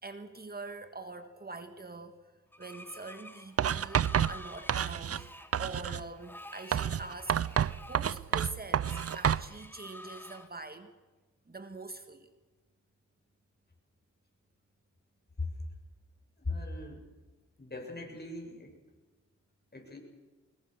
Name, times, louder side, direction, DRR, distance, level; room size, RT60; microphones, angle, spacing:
voice 1, 0.0-2.2 2.6-5.3 5.6-10.9 11.5-12.3, right 3 dB, 30° right, 8 dB, 1.8 m, -44 dB
Screech, 2.5-10.5, left 1 dB, 5° left, 2.7 m, -50 dB
Writing, 3.6-5.3 5.5-6.1 6.7-9.5, right 9 dB, 50° right, 0.6 m, -29 dB
voice 2, 16.4-17.1 17.6-18.8 19.7-20.0, left 2 dB, 35° left, 2 dB, 7.3 m, -40 dB
24.5 x 21.5 x 6.6 m, 1.3 s
cardioid pair, 55°, 30 cm